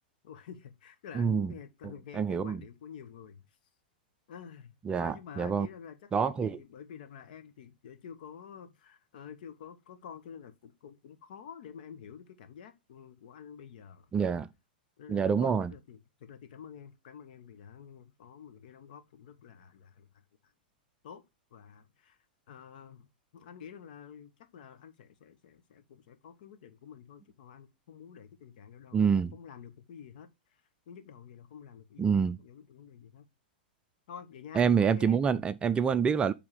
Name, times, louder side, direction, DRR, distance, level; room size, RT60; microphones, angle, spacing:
voice 1, 0.2-3.5 4.3-14.1 15.0-20.5 21.0-21.2 21.5-22.2 22.5-23.1 23.3-33.3 34.1-35.2, left 7 dB, 60° left, 1.3 m, -49 dB
voice 2, 1.1-1.5 1.8-2.6 4.9-5.7 6.1-6.6 14.1-14.5 15.1-15.7 28.9-29.3 32.0-32.4 34.5-36.3, right 6 dB, 20° right, 0.4 m, -27 dB
7.3 x 3.6 x 4.8 m
hypercardioid pair, 105°, 5 cm